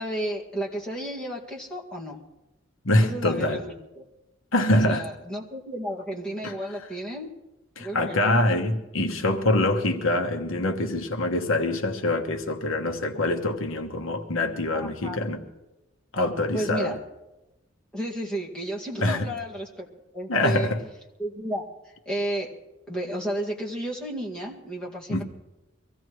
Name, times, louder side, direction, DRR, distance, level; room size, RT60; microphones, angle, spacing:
voice 1, 0.0-2.2 3.0-4.0 4.7-7.3 7.8-8.4 14.7-15.2 16.5-16.9 17.9-19.9 20.1-20.7 21.2-21.6 22.1-22.5 22.9-25.2, right 1 dB, 5° left, -4 dB, 2.0 m, -32 dB
voice 2, 2.8-3.6 4.5-5.1 6.4-6.5 7.8-15.4 16.1-17.0 19.0-19.3 20.3-20.8 25.1-25.2, left 1 dB, 80° left, 4 dB, 1.2 m, -24 dB
24.0 x 16.0 x 3.1 m, 1.0 s
head